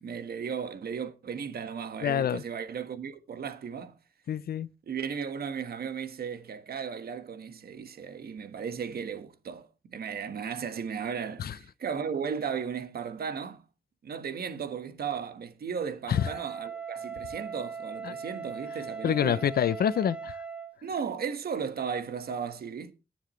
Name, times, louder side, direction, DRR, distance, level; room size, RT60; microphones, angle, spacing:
voice 1, 0.0-3.9 4.9-13.6 14.0-19.5 20.8-22.9, right 6 dB, 90° right, 1.5 m, -35 dB
voice 2, 2.0-2.4 4.3-4.7 11.4-11.5 16.1-16.3 18.0-18.1 19.0-20.4, left 9 dB, 90° left, 0.6 m, -26 dB
Wind instrument woodwind instrument, 16.1-20.8, right 5 dB, 10° right, 1.5 m, -39 dB
21.0 x 7.2 x 3.2 m
wide cardioid pair, 175°, 15 cm